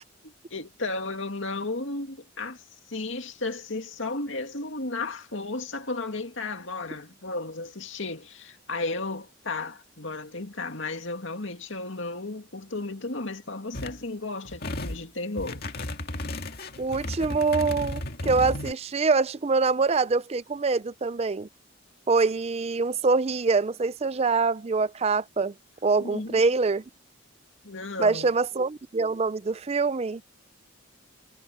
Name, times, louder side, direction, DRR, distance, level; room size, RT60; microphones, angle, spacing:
voice 1, 0.2-2.6 2.9-15.6 26.0-26.4 27.6-28.3, left 3 dB, 70° left, 2.4 m, -34 dB
sound 1, 13.7-14.0 14.4-15.0 15.4-18.7, left 1 dB, 50° left, 2.1 m, -34 dB
voice 2, 16.8-21.5 22.1-25.5 25.8-26.8 28.0-30.2, right 4 dB, 30° right, 0.4 m, -24 dB
head